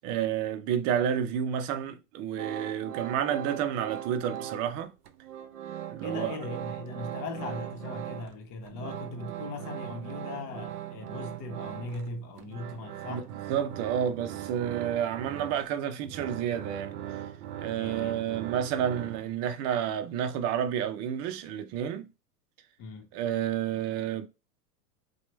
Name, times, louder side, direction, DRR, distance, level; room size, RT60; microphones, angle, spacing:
voice 1, 0.0-4.9 5.9-6.4 13.1-13.2 13.5-17.0 17.6-22.1 23.1-24.3, right 9 dB, 35° right, 0.5 m, -30 dB
sound 1, 2.4-4.8 5.1-8.4 8.7-19.5, right 12 dB, 75° right, 0.6 m, -40 dB
voice 2, 6.0-13.3 17.7-18.2 22.8-23.1, left 3 dB, 40° left, 1.0 m, -39 dB
3.0 x 2.3 x 3.0 m
hypercardioid pair, 105°, 48 cm